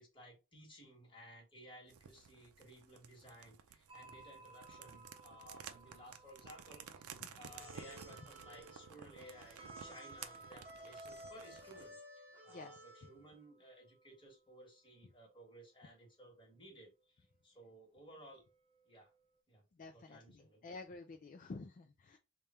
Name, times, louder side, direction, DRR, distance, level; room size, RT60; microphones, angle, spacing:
voice 1, 0.0-12.0 12.4-18.4 18.8-19.1 19.5-20.7, equal, 25° left, 0 dB, 1.4 m, -58 dB
sound 1, 1.9-11.9, right 7 dB, 90° right, 0.5 m, -54 dB
sound 2, 3.9-17.1 17.3-17.4 18.3-19.4, right 4 dB, 25° right, 0.4 m, -61 dB
sound 3, 7.4-13.3, equal, 10° right, 1.1 m, -56 dB
voice 2, 12.5-13.1 19.7-22.2, left 3 dB, 40° left, 6 dB, 0.4 m, -51 dB
3.4 x 2.3 x 4.1 m, 0.27 s
head